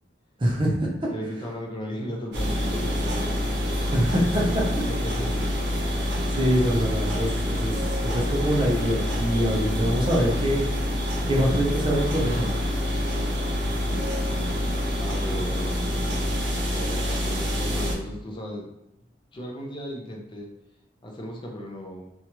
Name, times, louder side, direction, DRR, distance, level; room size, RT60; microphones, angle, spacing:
voice 1, 0.4-1.1 3.9-4.6 6.0-7.8 8.0-10.6 11.3-12.6, equal, 30° right, -1 dB, 0.5 m, -24 dB
voice 2, 1.1-3.8 4.5-5.5 13.8-14.5 14.7-18.7 19.3-20.5 21.0-22.1, equal, 25° left, 0 dB, 0.5 m, -36 dB
sound 1, 2.3-18.0, equal, 75° right, 0.7 m, -26 dB
2.8 x 2.3 x 2.9 m, 0.85 s
head